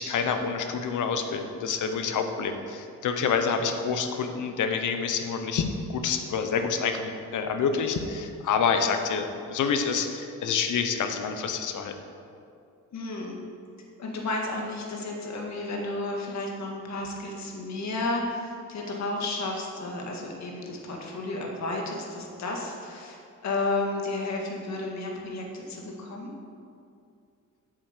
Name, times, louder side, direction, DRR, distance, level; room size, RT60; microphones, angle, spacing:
voice 1, 0.0-11.9, left 6 dB, 80° left, 6 dB, 1.0 m, -27 dB
voice 2, 12.9-13.4 14.0-26.3, left 2 dB, 65° left, 0 dB, 1.9 m, -32 dB
8.1 x 7.8 x 6.7 m, 2.4 s
cardioid pair, 130°, 30 cm